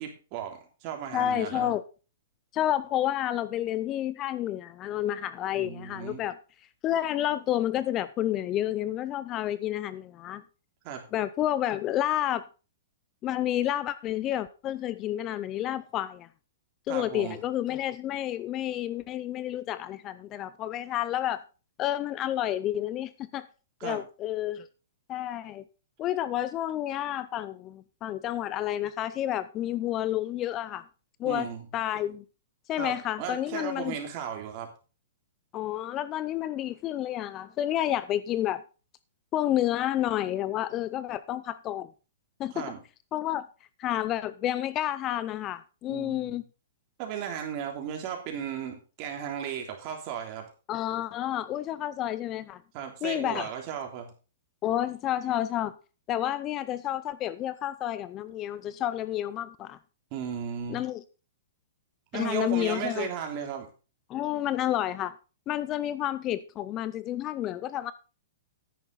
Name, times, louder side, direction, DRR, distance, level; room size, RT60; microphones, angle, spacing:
voice 1, 0.0-1.7 5.6-6.2 10.8-11.0 16.9-17.4 23.8-24.0 31.2-31.7 32.8-34.7 42.5-42.8 45.9-46.4 47.0-50.4 52.7-54.1 60.1-60.8 62.1-63.7, right 8 dB, 40° right, 3.2 m, -35 dB
voice 2, 1.1-1.8 2.5-6.4 6.8-10.4 11.1-12.4 13.2-16.3 16.9-21.4 21.8-23.5 23.8-24.7 25.1-25.6 26.0-30.8 31.2-31.5 31.7-32.2 32.7-33.9 35.5-38.6 39.3-41.9 42.4-42.7 43.1-43.4 43.8-46.4 50.7-52.6 53.0-53.5 54.6-55.7 56.1-59.8 60.7-61.0 62.1-63.1 64.1-65.1 65.5-67.9, left 12 dB, 30° left, 0.5 m, -30 dB
10.0 x 8.9 x 4.0 m
hypercardioid pair, 140°, 0 cm